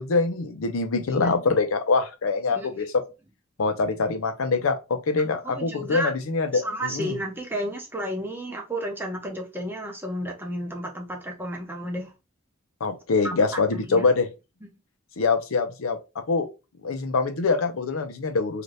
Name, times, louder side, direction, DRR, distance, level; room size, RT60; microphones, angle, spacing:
voice 1, 0.0-2.9 3.6-7.1 12.8-14.3 15.2-16.0 16.3-16.5 16.8-18.6, left 4 dB, 80° left, 0.5 m, -24 dB
voice 2, 5.4-6.1 6.5-12.1 13.2-13.3 13.7-14.1, equal, 10° right, 0.7 m, -32 dB
2.7 x 2.4 x 3.2 m
head